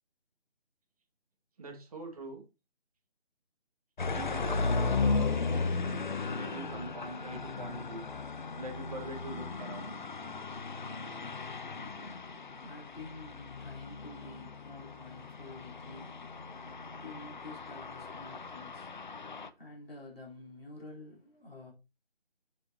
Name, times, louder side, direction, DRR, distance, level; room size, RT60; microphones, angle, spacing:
voice 1, 1.6-2.4 4.0-8.0 8.6-9.9, right 2 dB, 35° right, 2.0 m, -44 dB
sound 1, 4.0-19.5, left 4 dB, 50° left, 0.7 m, -36 dB
voice 2, 11.6-21.7, left 2 dB, 65° left, 4.0 m, -50 dB
7.7 x 6.5 x 2.9 m
figure-of-eight pair, 165°, 31 cm